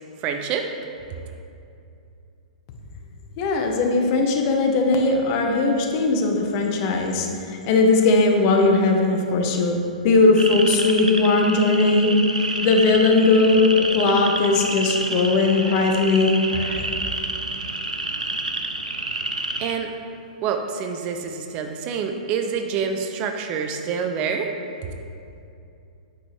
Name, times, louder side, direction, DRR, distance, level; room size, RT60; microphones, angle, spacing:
voice 1, 0.2-0.7 19.6-20.0 20.4-24.6, right 6 dB, 30° right, 5 dB, 0.4 m, -27 dB
voice 2, 3.4-9.8 10.0-12.1 12.6-16.9, left 3 dB, 35° left, 2 dB, 0.9 m, -19 dB
sound 1, 10.4-19.7, right 2 dB, 80° right, 0.5 m, -29 dB
8.3 x 6.0 x 3.2 m, 2.6 s
figure-of-eight pair, 110°, 4 cm